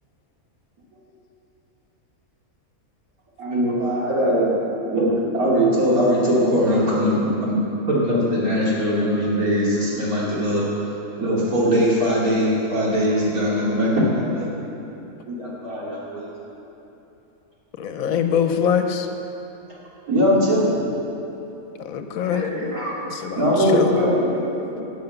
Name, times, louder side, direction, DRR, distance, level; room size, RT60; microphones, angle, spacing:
voice 1, 3.4-4.5 4.8-7.1 7.4-7.6 7.9-10.7 11.2-14.5 15.3-16.3 20.1-20.8 23.4-24.1, equal, 80° right, -6 dB, 2.9 m, -20 dB
voice 2, 17.8-19.1 21.8-22.5 23.2-24.0, left 8 dB, 75° left, 6 dB, 1.1 m, -23 dB
voice 3, 22.2-23.0 23.6-24.8, left 1 dB, 35° right, -8 dB, 3.2 m, -31 dB
11.0 x 7.6 x 6.9 m, 3.0 s
omnidirectional pair, 1.5 m